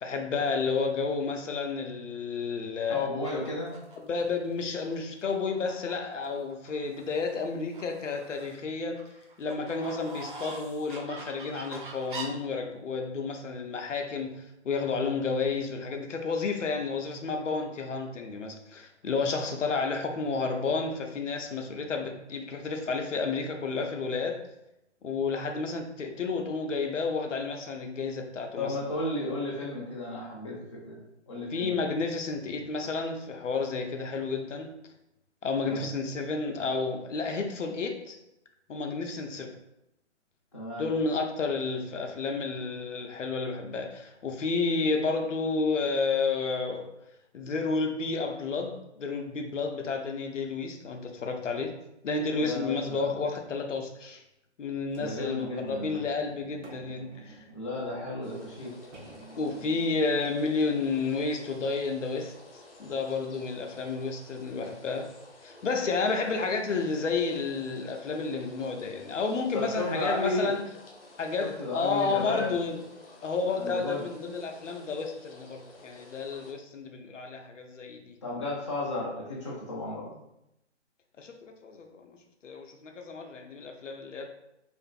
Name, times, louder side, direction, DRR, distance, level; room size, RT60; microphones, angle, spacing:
voice 1, 0.0-3.1 4.0-9.0 9.4-24.5 25.0-28.8 31.5-34.7 35.4-38.2 38.7-39.5 40.8-46.9 47.3-51.8 52.0-54.2 54.6-57.4 59.4-62.3 62.8-65.1 65.4-70.7 71.2-72.8 73.2-78.1 81.2-82.2 82.4-84.3, left 4 dB, 85° left, 4 dB, 0.5 m, -31 dB
voice 2, 2.8-3.8 28.6-31.0 31.3-31.9 35.6-35.8 40.5-40.9 52.3-53.0 55.0-56.0 57.5-58.7 69.5-70.5 71.4-72.6 73.6-74.1 78.2-80.1, left 2 dB, 25° left, -5 dB, 0.4 m, -33 dB
sound 1, 3.2-4.2 4.8-4.9 5.3-5.9 6.2-7.3 7.7-8.6 8.9-12.2, right 3 dB, 45° right, 0.5 m, -44 dB
sound 2, 54.9-61.7 62.3-62.4, right 2 dB, 80° right, 0.7 m, -52 dB
sound 3, 58.2-76.5, left 2 dB, 50° left, 0.7 m, -52 dB
2.5 x 2.4 x 2.3 m, 0.85 s
figure-of-eight pair, 145°, 36 cm